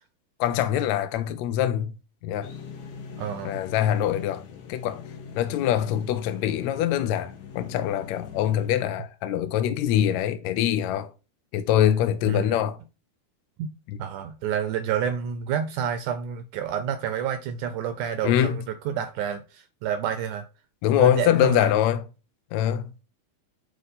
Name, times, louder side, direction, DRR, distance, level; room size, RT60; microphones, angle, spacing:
voice 1, 0.4-1.9 2.2-2.5 3.4-4.4 4.7-5.0 5.4-11.1 11.5-12.8 13.9-14.0 18.2-18.6 20.8-22.0 22.5-22.9, left 11 dB, 90° left, 1.6 m, -24 dB
sound 1, 2.4-8.7, left 6 dB, 65° left, 2.6 m, -42 dB
voice 2, 3.2-3.6 12.3-12.6 13.6-13.7 14.0-20.5 21.0-21.7, right 8 dB, 80° right, 1.9 m, -29 dB
9.3 x 3.2 x 4.1 m
omnidirectional pair, 4.0 m